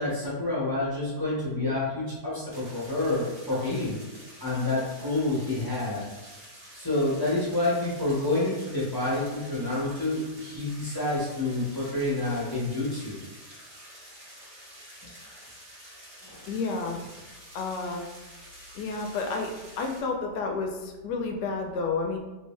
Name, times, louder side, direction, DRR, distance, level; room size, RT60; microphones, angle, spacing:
voice 1, 0.0-4.0 4.4-6.0 6.7-13.2 16.2-16.5, left 2 dB, 15° left, -8 dB, 0.9 m, -28 dB
sound 1, 2.5-20.0, equal, 25° right, 0.6 m, -48 dB
voice 2, 16.5-17.1 17.5-18.1 18.7-19.5 19.8-22.2, left 4 dB, 80° left, 2 dB, 1.2 m, -30 dB
3.2 x 2.7 x 3.1 m, 1.1 s
omnidirectional pair, 1.8 m